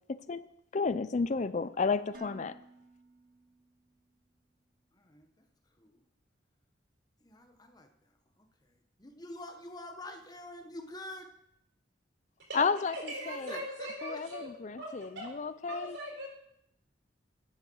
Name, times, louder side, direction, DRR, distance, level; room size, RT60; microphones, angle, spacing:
voice 1, 0.1-0.5 0.7-2.5 12.5-13.5 14.0-16.0, left 4 dB, 40° left, 14 dB, 0.4 m, -32 dB
Dishes pots and pans, 2.1-4.2, right 3 dB, 50° right, 0.9 m, -55 dB
voice 2, 4.9-5.4 5.8-6.0 7.2-11.3 13.2-14.2, left 1 dB, 20° left, 5 dB, 1.1 m, -47 dB
voice 3, 12.9-14.5 14.8-15.3 15.7-16.3, right 1 dB, 70° right, 0 dB, 4.2 m, -40 dB
10.5 x 8.8 x 6.2 m, 0.76 s
head